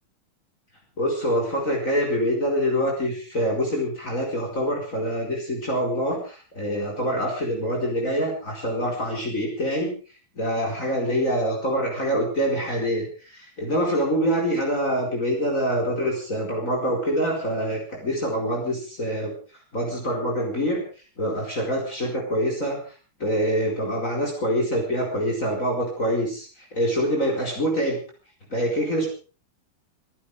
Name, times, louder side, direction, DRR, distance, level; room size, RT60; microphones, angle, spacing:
voice 1, 1.0-9.9 10.4-19.4 19.7-20.8 21.2-22.8 23.2-28.0 28.5-29.1, equal, 35° left, -1 dB, 5.1 m, -25 dB
26.0 x 11.0 x 4.9 m, 0.38 s
omnidirectional pair, 2.3 m